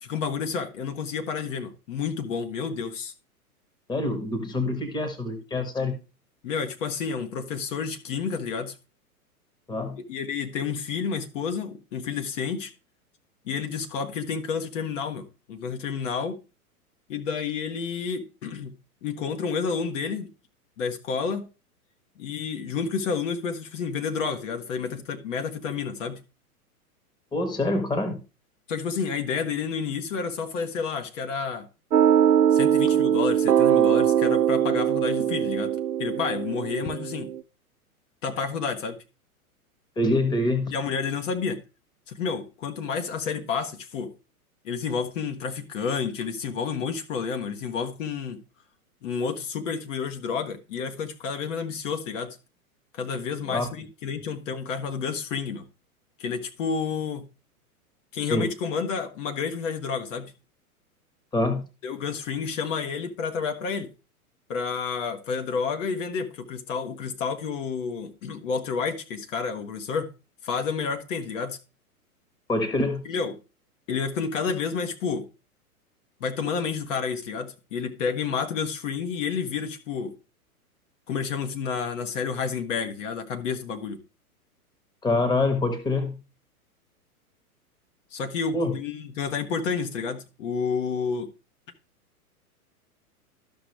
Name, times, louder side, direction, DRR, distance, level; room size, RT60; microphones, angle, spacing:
voice 1, 0.0-3.1 6.4-8.7 10.1-12.7 13.4-16.4 17.1-18.7 19.0-20.3 20.8-21.5 22.2-26.2 28.7-31.7 32.5-35.7 36.0-37.3 38.2-39.0 40.7-41.6 42.1-44.1 44.6-48.4 49.0-52.4 52.9-55.7 56.2-57.3 58.1-60.3 61.8-63.9 64.5-70.1 70.4-71.6 73.0-73.3 73.9-75.3 76.2-80.1 81.1-84.0 88.1-91.3, left 5 dB, 55° left, 1.4 m, -30 dB
voice 2, 3.9-6.0 9.7-10.0 27.3-28.2 40.0-40.8 53.5-53.7 58.3-58.5 61.3-61.6 72.5-73.0 85.0-86.2 88.5-88.8, left 2 dB, 10° left, 1.2 m, -25 dB
sound 1, 31.9-37.4, right 9 dB, 90° right, 0.6 m, -22 dB
12.5 x 6.0 x 3.3 m
figure-of-eight pair, 105°, 45 cm